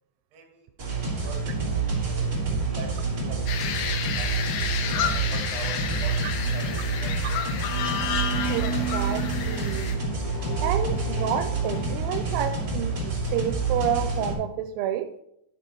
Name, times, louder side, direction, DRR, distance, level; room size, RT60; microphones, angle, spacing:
voice 1, 0.3-1.4 2.0-3.4 4.2-4.3 5.0-6.2 6.5-7.2, right 4 dB, 65° right, 3 dB, 3.7 m, -43 dB
sound 1, 0.8-14.3, right 3 dB, 25° right, 4.1 m, -28 dB
sound 2, 3.5-9.9, left 8 dB, 90° left, 2.9 m, -31 dB
sound 3, 6.4-12.2, right 4 dB, 5° left, 1.6 m, -36 dB
voice 2, 8.5-9.9 10.6-15.1, right 10 dB, 90° right, 8 dB, 2.6 m, -29 dB
13.0 x 5.0 x 4.5 m, 0.78 s
omnidirectional pair, 4.5 m